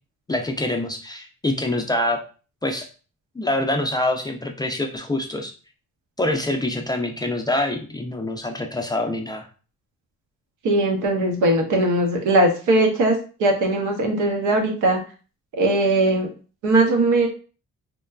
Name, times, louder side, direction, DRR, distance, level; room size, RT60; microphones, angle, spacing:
voice 1, 0.3-2.2 2.6-2.9 3.4-5.5 6.2-9.5, left 1 dB, 15° left, 4 dB, 0.3 m, -25 dB
voice 2, 10.6-15.0 15.5-16.3 16.6-17.3, right 2 dB, 85° right, 3 dB, 0.8 m, -20 dB
3.0 x 2.2 x 2.2 m, 0.36 s
cardioid pair, 90°, 30 cm